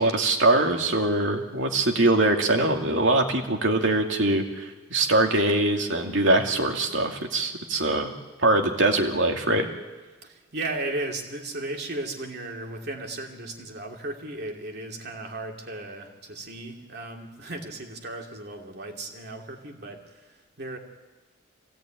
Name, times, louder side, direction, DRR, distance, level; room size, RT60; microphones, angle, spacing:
voice 1, 0.0-8.1 8.4-9.7, right 2 dB, 70° right, 3 dB, 2.4 m, -23 dB
voice 2, 10.2-20.8, right 2 dB, 50° right, 2 dB, 2.8 m, -35 dB
25.5 x 17.5 x 9.1 m, 1.3 s
head